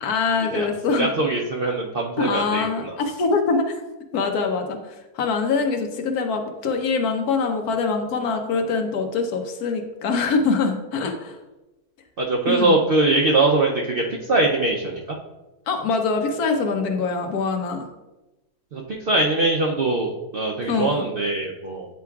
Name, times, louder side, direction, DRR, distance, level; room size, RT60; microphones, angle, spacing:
voice 1, 0.0-1.1 2.2-3.8 4.1-4.8 5.1-11.3 12.5-12.7 15.7-17.8 20.7-21.0, left 4 dB, 80° left, 5 dB, 1.3 m, -24 dB
voice 2, 0.5-3.0 12.2-15.2 18.7-21.9, right 2 dB, 65° right, -1 dB, 0.5 m, -22 dB
9.3 x 4.6 x 2.3 m, 1.1 s
omnidirectional pair, 1.6 m